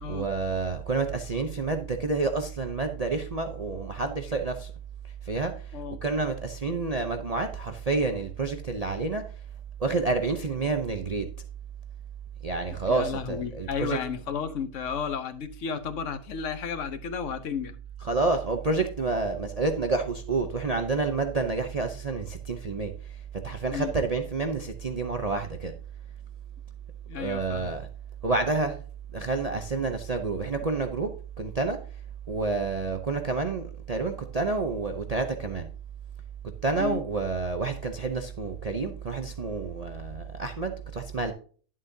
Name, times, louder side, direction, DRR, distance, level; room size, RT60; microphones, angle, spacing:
voice 1, 0.1-4.7 5.3-5.5 6.0-9.2 9.8-11.3 12.4-14.0 18.0-22.9 23.4-25.7 27.2-27.9 28.2-28.8 29.1-31.1 31.4-31.8 32.3-35.7 36.6-41.3, right 3 dB, 75° right, 0.3 m, -29 dB
voice 2, 12.9-17.7 23.7-23.9 27.1-27.7 36.8-37.0, left 7 dB, 55° left, 1.0 m, -33 dB
11.0 x 7.4 x 2.7 m
omnidirectional pair, 1.9 m